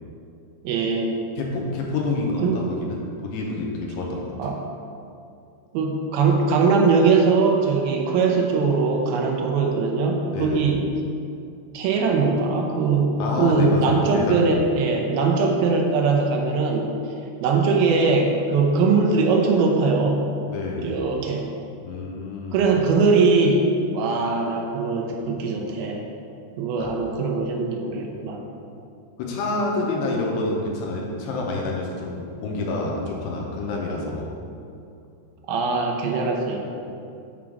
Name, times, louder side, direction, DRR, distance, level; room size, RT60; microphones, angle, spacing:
voice 1, 0.6-1.2 2.4-2.6 4.4-4.6 5.7-10.9 11.7-16.9 17.4-20.3 20.8-21.5 22.5-26.0 26.6-28.4 35.5-36.7, right 4 dB, 80° right, 1 dB, 2.3 m, -21 dB
voice 2, 1.4-4.3 10.3-10.7 13.2-14.6 20.5-20.9 21.8-22.6 26.8-26.9 29.2-34.3, left 2 dB, 85° left, -1 dB, 2.9 m, -27 dB
7.1 x 3.7 x 6.2 m, 2.5 s
omnidirectional pair, 4.9 m